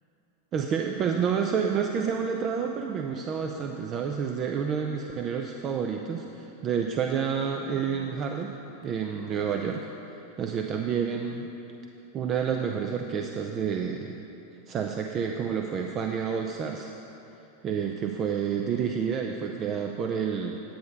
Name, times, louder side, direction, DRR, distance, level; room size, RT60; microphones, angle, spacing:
voice 1, 0.5-9.9 10.4-11.5 12.1-14.2 14.7-16.9 17.6-20.6, right 7 dB, 35° right, 3 dB, 0.6 m, -29 dB
10.5 x 8.4 x 5.4 m, 2.9 s
figure-of-eight pair, 90°, 0 cm